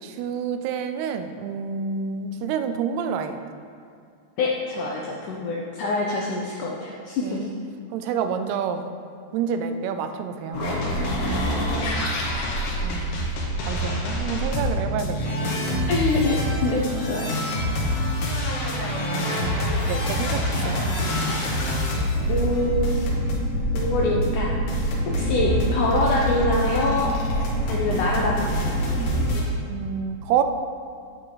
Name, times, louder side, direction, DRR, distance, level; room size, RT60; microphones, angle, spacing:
voice 1, 0.0-3.4 7.2-7.5 7.9-8.9 9.3-10.8 12.8-13.3 13.6-15.6 16.7-17.9 19.6-20.9 29.7-30.4, right 7 dB, 85° right, 8 dB, 2.6 m, -29 dB
voice 2, 4.4-7.5 11.7-11.8 15.9-17.4 21.4-21.6 22.3-23.0 23.7-24.5 25.1-27.1 27.7-28.8, left 2 dB, 80° left, -2 dB, 1.8 m, -25 dB
sound 1, 10.5-29.4, equal, 65° left, 2.7 m, -25 dB
9.8 x 8.7 x 4.0 m, 2.3 s
omnidirectional pair, 4.5 m